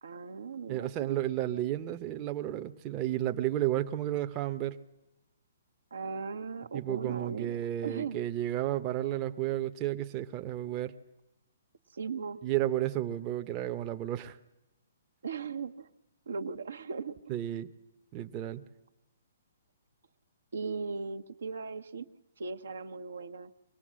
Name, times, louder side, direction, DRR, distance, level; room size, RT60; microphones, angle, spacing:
voice 1, 0.0-1.2 5.9-8.2 11.9-12.4 15.2-15.9 16.3-17.1 20.5-22.1 22.4-23.5, right 5 dB, 75° right, 8 dB, 1.0 m, -38 dB
voice 2, 0.7-4.8 6.7-11.0 12.4-14.4 17.3-17.7 18.1-18.6, right 13 dB, 30° right, 7 dB, 0.8 m, -32 dB
23.0 x 18.0 x 7.5 m, 0.96 s
hypercardioid pair, 140°, 0 cm